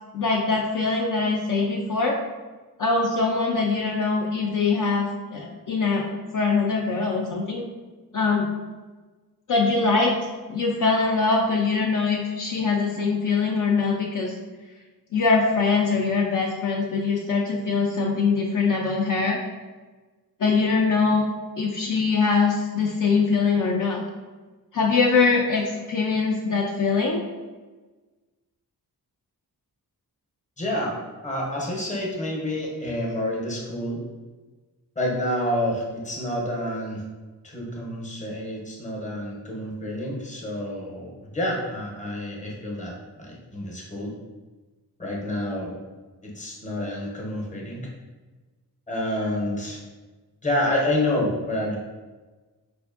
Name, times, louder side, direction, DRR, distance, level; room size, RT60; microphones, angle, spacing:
voice 1, 0.1-2.2 2.8-5.1 5.3-7.6 8.1-8.5 9.5-14.3 15.1-19.4 20.4-21.3 21.6-24.0 24.7-27.2, left 4 dB, 55° left, -2 dB, 0.4 m, -23 dB
voice 2, 30.6-30.9 31.2-34.0 35.0-37.0 37.4-44.1 45.0-45.8 46.2-47.9 48.9-49.8 50.4-51.8, left 1 dB, 20° left, -3 dB, 0.7 m, -28 dB
4.6 x 2.5 x 2.4 m, 1.3 s
wide cardioid pair, 145°, 38 cm